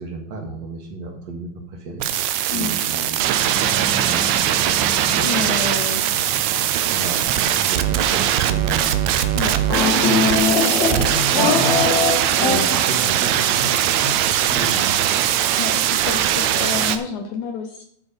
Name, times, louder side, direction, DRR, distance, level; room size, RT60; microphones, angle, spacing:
voice 1, 0.0-2.1 2.5-5.5 6.8-9.0 9.8-10.3 10.7-11.9 12.5-15.1, right 2 dB, 60° right, 2 dB, 2.1 m, -32 dB
sound 1, 2.0-17.0, right 11 dB, 80° right, 1.7 m, -20 dB
sound 2, 3.3-9.2, right 2 dB, 30° right, 2.0 m, -36 dB
voice 2, 5.2-6.0 9.3-9.6 15.6-17.8, left 5 dB, 75° left, 5 dB, 1.9 m, -29 dB
sound 3, 9.7-13.2, left 4 dB, 40° left, 1.8 m, -21 dB
11.0 x 6.1 x 5.2 m, 0.68 s
omnidirectional pair, 4.2 m